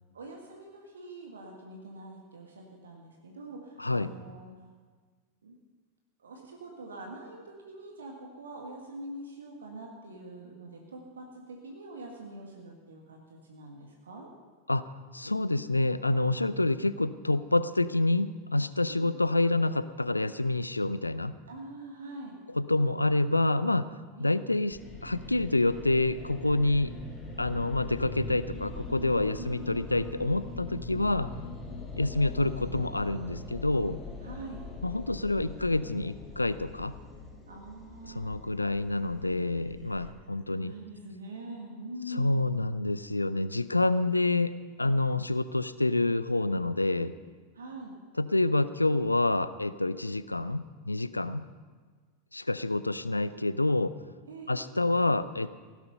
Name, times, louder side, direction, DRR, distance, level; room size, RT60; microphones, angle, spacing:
voice 1, 0.1-4.7 5.4-5.5 6.2-14.3 18.9-19.1 21.5-22.4 24.2-24.3 29.4-29.8 34.2-34.7 37.5-38.4 40.5-42.3 47.5-47.9 54.3-54.6, right 1 dB, 70° right, 1 dB, 1.8 m, -44 dB
voice 2, 3.8-4.1 14.7-14.8 15.1-21.4 22.5-23.9 24.2-26.9 27.4-31.3 32.0-34.0 34.8-36.9 38.0-40.7 42.1-47.1 48.2-51.5 52.3-53.9 54.5-55.5, left 2 dB, 85° left, 15 dB, 0.4 m, -27 dB
sound 1, 24.7-40.1, left 2 dB, 20° left, 2.6 m, -42 dB
16.0 x 11.5 x 5.6 m, 1.5 s
figure-of-eight pair, 85°, 0 cm